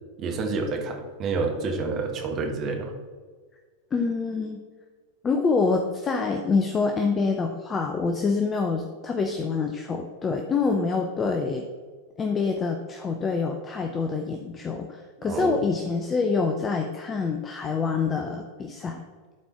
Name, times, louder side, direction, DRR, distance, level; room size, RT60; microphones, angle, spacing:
voice 1, 0.2-2.9 15.3-15.6, right 3 dB, 30° right, 3 dB, 1.4 m, -28 dB
voice 2, 3.9-4.6 5.2-11.6 12.2-19.0, left 4 dB, 20° left, 4 dB, 0.7 m, -26 dB
11.5 x 4.4 x 4.3 m, 1.5 s
figure-of-eight pair, 90°, 0 cm